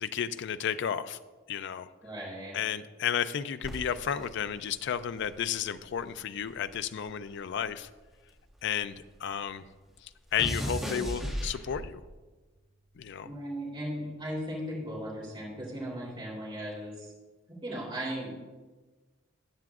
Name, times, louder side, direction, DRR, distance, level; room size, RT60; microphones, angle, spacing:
voice 1, 0.0-1.2 1.5-1.9 2.5-7.9 8.6-8.9 9.2-9.6 10.3-12.0 13.0-13.3, left 8 dB, 60° left, 13 dB, 0.4 m, -32 dB
voice 2, 2.0-2.6 13.2-17.1 17.6-18.3, equal, 25° right, -6 dB, 3.1 m, -37 dB
sound 1, 3.6-6.1 6.4-9.1 9.3-12.1 12.9-13.2, equal, ahead, 1.9 m, -38 dB
13.5 x 8.9 x 2.4 m, 1.3 s
head